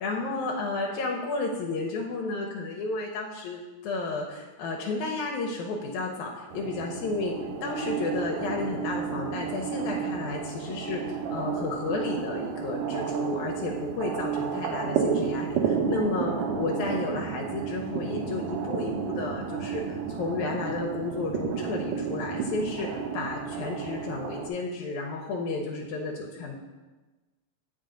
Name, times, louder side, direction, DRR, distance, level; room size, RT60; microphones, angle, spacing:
voice 1, 0.0-7.4 7.6-26.6, left 3 dB, 85° left, 1 dB, 2.0 m, -32 dB
sound 1, 6.5-24.5, right 6 dB, 90° right, 1.3 m, -31 dB
7.7 x 5.2 x 3.8 m, 1.2 s
omnidirectional pair, 3.3 m